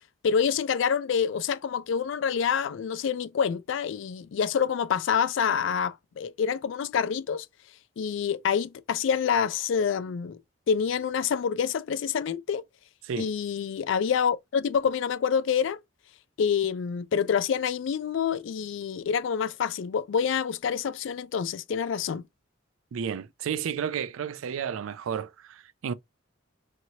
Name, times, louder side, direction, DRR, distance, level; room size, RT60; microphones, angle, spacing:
voice 1, 0.2-7.5 8.0-10.4 10.7-12.6 13.2-15.8 16.4-22.2, left 7 dB, 65° left, 0.3 m, -27 dB
voice 2, 22.9-25.9, right 7 dB, 85° right, 0.3 m, -32 dB
2.8 x 2.8 x 2.7 m
head